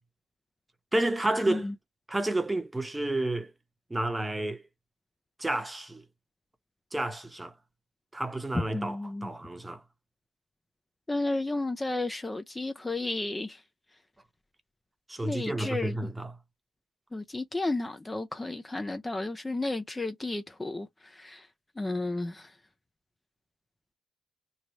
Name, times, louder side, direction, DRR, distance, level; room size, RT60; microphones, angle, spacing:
voice 1, 0.9-1.7 2.1-3.5 3.9-4.6 5.4-6.0 6.9-7.5 8.1-9.8 15.1-16.3, right 1 dB, 15° right, 0.9 m, -30 dB
voice 2, 8.7-9.3 11.1-13.6 15.2-16.0 17.1-21.5 21.8-22.5, left 2 dB, 15° left, 0.5 m, -32 dB
3.1 x 2.5 x 4.2 m
cardioid pair, 90°, 0 cm